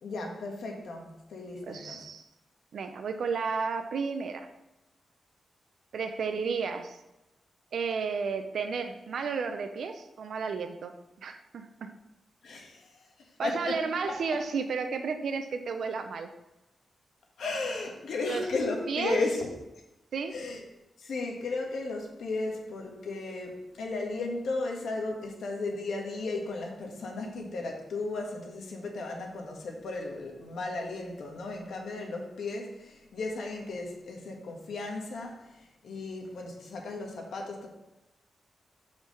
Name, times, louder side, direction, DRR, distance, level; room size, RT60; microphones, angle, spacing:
voice 1, 0.0-2.0 12.4-13.1 13.4-13.7 14.1-14.2 17.4-19.5 20.3-20.6 21.0-35.5 35.8-37.7, left 3 dB, 85° left, 1 dB, 1.5 m, -35 dB
voice 2, 1.6-2.2 2.7-4.5 5.9-7.0 7.7-10.9 11.2-11.9 13.4-16.3 18.2-18.4 18.9-19.2 20.1-20.4, right 5 dB, 75° right, 7 dB, 0.7 m, -32 dB
5.6 x 4.9 x 6.2 m, 0.93 s
wide cardioid pair, 150°, 0 cm